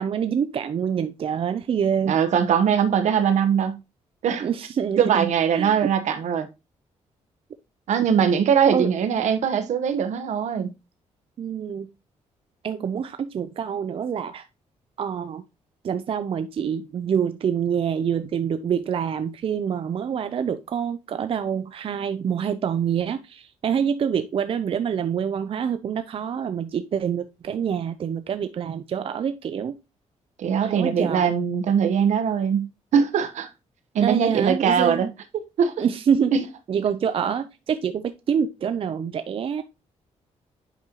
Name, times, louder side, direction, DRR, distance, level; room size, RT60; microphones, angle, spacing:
voice 1, 0.0-2.2 4.4-5.9 8.7-8.9 11.4-11.9 12.6-14.5 15.0-15.4 15.8-29.8 30.6-31.3 34.0-35.1 35.8-36.3 36.7-39.6, right 7 dB, 50° right, 0.5 m, -26 dB
voice 2, 2.0-3.8 4.2-4.5 5.0-6.5 7.9-10.7 30.4-33.5 33.9-35.1 35.6-35.8 36.3-36.5, right 7 dB, 75° right, 1.0 m, -21 dB
8.4 x 5.2 x 2.9 m
cardioid pair, 110°, 12 cm